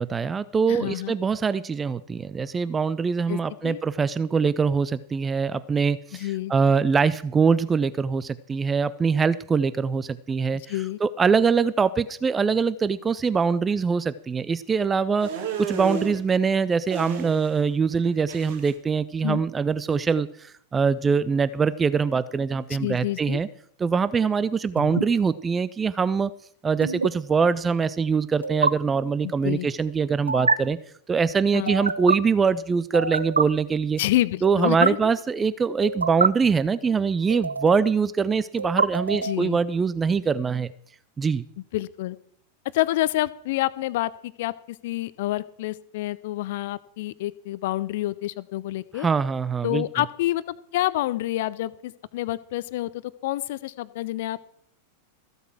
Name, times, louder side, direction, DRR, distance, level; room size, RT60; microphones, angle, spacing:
voice 1, 0.0-10.7 11.0-15.3 15.7-23.5 23.8-26.3 26.6-30.8 31.1-34.0 34.4-40.7 41.2-41.4 49.0-49.8, right 5 dB, 15° right, 17 dB, 0.4 m, -23 dB
voice 2, 0.7-1.1 3.3-3.8 6.1-6.5 10.7-11.0 19.2-19.4 22.8-23.4 29.2-29.7 31.5-31.7 34.0-35.1 39.2-39.6 41.7-42.2 42.7-49.1 49.6-50.4 50.7-52.9 53.2-54.4, left 16 dB, 50° left, 18 dB, 0.6 m, -28 dB
sound 1, 15.2-16.2 16.9-17.7 17.9-18.7, right 6 dB, 55° right, 2.5 m, -33 dB
sound 2, 24.8-25.0 26.8-27.1 28.4-28.7 30.3-30.6 31.7-32.2 32.9-33.4 34.4-34.9 35.8-36.3 37.3-37.9 38.6-39.4, right 4 dB, 75° right, 0.5 m, -25 dB
14.5 x 8.0 x 6.1 m, 0.65 s
figure-of-eight pair, 90°, 0 cm